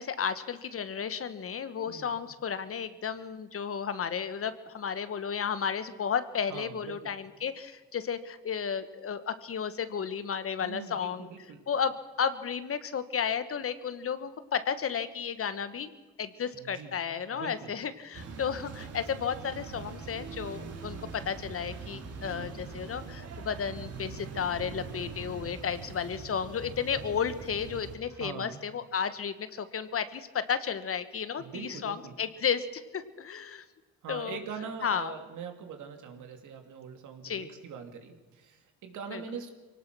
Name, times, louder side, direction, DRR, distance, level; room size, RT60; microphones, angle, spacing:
voice 1, 0.0-11.3 11.7-11.9 12.2-15.9 16.2-33.6 34.1-34.4 34.8-35.1 37.2-37.5 39.1-39.2, left 7 dB, 50° left, 12 dB, 1.3 m, -33 dB
voice 2, 1.9-2.2 6.5-7.2 10.6-11.6 16.5-16.9 17.3-17.7 22.2-22.5 28.1-28.6 31.4-32.2 34.0-39.5, right 6 dB, 80° right, 5 dB, 2.7 m, -43 dB
sound 1, 18.1-28.0, right 4 dB, 55° right, 2.8 m, -42 dB
23.5 x 18.0 x 6.1 m, 1.2 s
cardioid pair, 90°, 30 cm